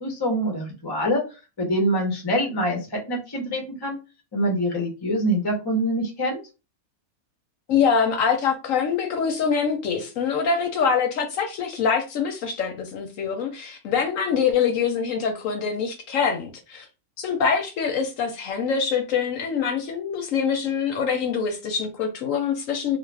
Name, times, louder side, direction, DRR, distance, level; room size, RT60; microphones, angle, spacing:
voice 1, 0.0-1.2 1.6-4.0 4.3-6.4, equal, 25° left, 0.5 m, -25 dB
voice 2, 7.7-16.9 17.2-23.0, left 6 dB, 70° left, 0.9 m, -24 dB
2.4 x 2.4 x 3.2 m
omnidirectional pair, 1.6 m